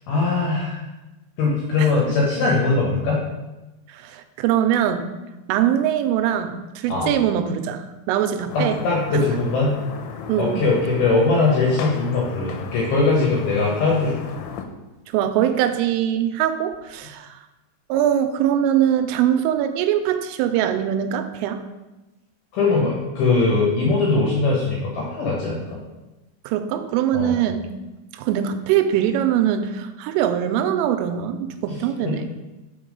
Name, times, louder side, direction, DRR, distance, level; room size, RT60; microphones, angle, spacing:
voice 1, 0.1-0.8 1.4-3.2 6.9-7.1 8.5-9.7 10.4-14.2 22.5-25.8 27.1-27.4 31.7-32.1, left 3 dB, 70° left, -3 dB, 2.5 m, -21 dB
voice 2, 3.9-5.1 5.5-8.8 10.3-10.6 15.1-17.4 17.9-21.6 26.5-27.7 28.1-32.3, right 10 dB, 85° right, 8 dB, 3.1 m, -22 dB
sound 1, 8.5-14.6, left 6 dB, 90° left, 3.2 m, -35 dB
5.9 x 5.5 x 5.2 m, 1.1 s
omnidirectional pair, 5.7 m